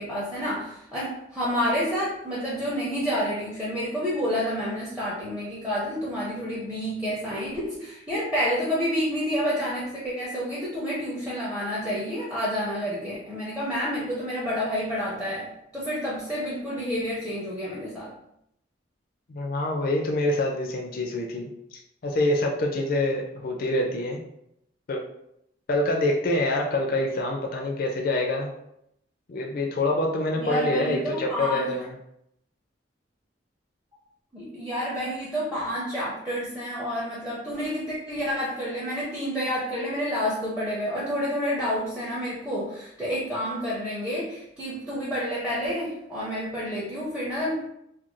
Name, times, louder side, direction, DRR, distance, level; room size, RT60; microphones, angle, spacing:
voice 1, 0.0-18.1 30.4-31.7 34.3-47.7, equal, 5° right, -8 dB, 0.5 m, -29 dB
voice 2, 19.3-24.2 24.9-25.0 25.7-28.5 29.3-31.9, left 1 dB, 50° left, 1 dB, 0.4 m, -26 dB
2.4 x 2.2 x 3.0 m, 0.78 s
head